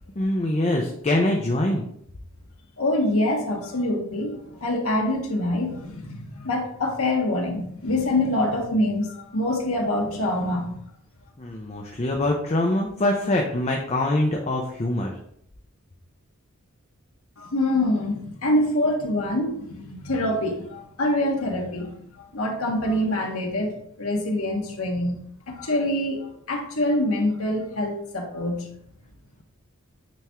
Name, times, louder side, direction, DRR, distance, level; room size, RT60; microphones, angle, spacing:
voice 1, 0.2-1.8 11.4-15.1, left 1 dB, 30° left, 1 dB, 0.6 m, -24 dB
voice 2, 2.8-10.8 17.4-22.0 22.3-25.1 25.5-28.7, left 1 dB, 70° left, 0 dB, 1.4 m, -25 dB
9.0 x 3.5 x 3.0 m, 0.70 s
head